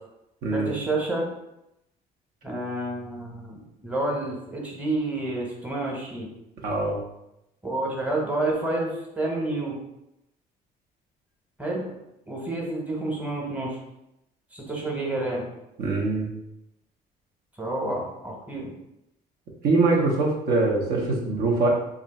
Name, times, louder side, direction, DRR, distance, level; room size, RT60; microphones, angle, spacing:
voice 1, 0.5-1.3 2.4-6.3 7.6-9.8 11.6-11.8 12.3-13.8 14.5-15.5 17.6-18.7, right 2 dB, 10° right, -2 dB, 1.0 m, -29 dB
voice 2, 6.6-7.0 15.8-16.3 19.6-21.7, right 3 dB, 70° right, -2 dB, 0.9 m, -23 dB
2.9 x 2.6 x 4.1 m, 0.87 s
cardioid pair, 110°, 17 cm